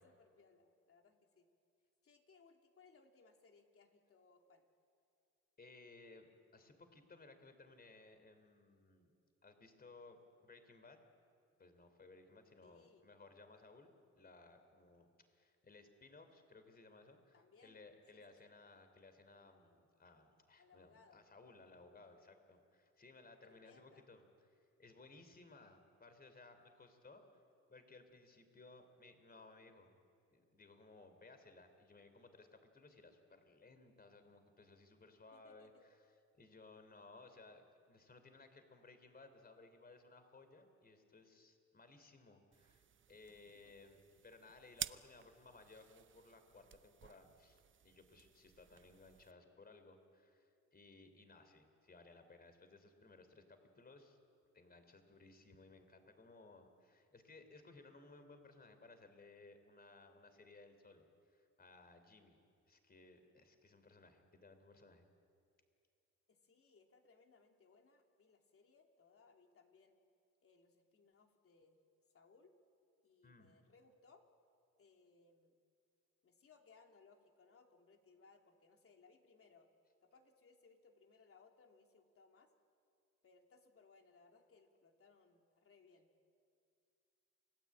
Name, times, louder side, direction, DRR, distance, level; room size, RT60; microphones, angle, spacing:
voice 1, 0.0-1.5 2.0-4.7 12.6-13.1 17.3-17.8 18.1-18.5 20.6-21.2 23.4-24.1 35.3-35.9 43.6-43.9 66.3-70.0 70.4-71.8 72.1-72.5 73.0-74.3 74.8-75.5 76.2-79.7 80.0-82.5 83.2-86.1, left 4 dB, 45° left, 3 dB, 3.3 m, -67 dB
voice 2, 5.6-9.1 9.4-11.0 11.6-27.4 27.7-30.0 30.3-36.0 36.3-54.2 54.5-62.4 62.7-65.0 73.2-73.6, left 3 dB, 30° left, 8 dB, 3.8 m, -61 dB
sound 1, 42.5-49.3, right 8 dB, 40° right, 0.7 m, -52 dB
29.0 x 19.5 x 8.9 m, 2.4 s
cardioid pair, 90°, 30 cm